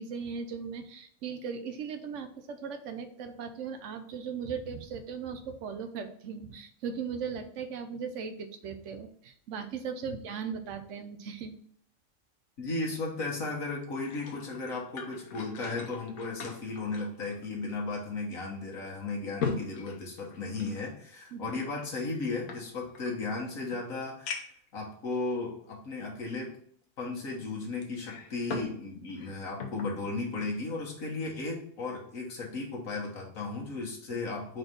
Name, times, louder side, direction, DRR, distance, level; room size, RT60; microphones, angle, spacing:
voice 1, 0.0-11.5 19.4-19.5 21.3-21.5 34.1-34.2, right 6 dB, 65° right, 8 dB, 1.0 m, -38 dB
voice 2, 12.6-24.5 24.7-26.5 27.0-34.6, left 3 dB, 75° left, -2 dB, 1.7 m, -35 dB
sound 1, 13.8-17.8 18.2-18.3 18.8-20.8 21.7-23.1 23.7-23.8 24.3-24.7 25.4-25.5 27.8-28.8 29.1-30.0 30.4-30.6, left 5 dB, 90° left, 1.3 m, -39 dB
4.4 x 4.1 x 5.2 m, 0.64 s
omnidirectional pair, 1.4 m